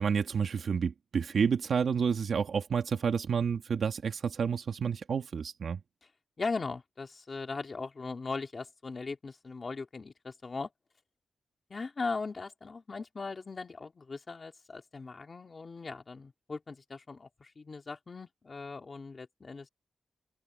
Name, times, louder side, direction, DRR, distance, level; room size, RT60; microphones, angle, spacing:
voice 1, 0.0-5.8, right 6 dB, 50° right, 2.2 m, -30 dB
voice 2, 6.4-10.7 11.7-19.7, left 4 dB, 30° left, 3.2 m, -39 dB
wide cardioid pair, 165°, 0 cm